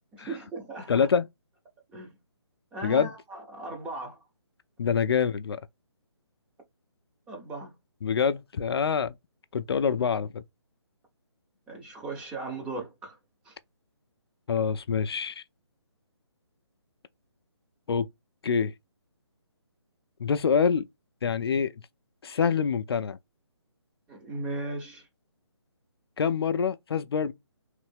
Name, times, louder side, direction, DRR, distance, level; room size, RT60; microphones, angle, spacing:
voice 1, 0.1-1.1 1.9-2.1 2.7-4.2 7.3-7.7 11.7-13.2 13.5-13.6 24.1-25.0, right 2 dB, 5° right, 0.6 m, -37 dB
voice 2, 0.9-1.3 2.8-3.1 4.8-5.6 8.0-9.1 9.5-10.4 14.5-15.4 17.9-18.1 18.4-18.7 20.2-20.9 21.2-21.7 22.2-23.2 26.2-27.3, left 6 dB, 60° left, 0.4 m, -26 dB
3.1 x 2.6 x 3.4 m
hypercardioid pair, 155°, 15 cm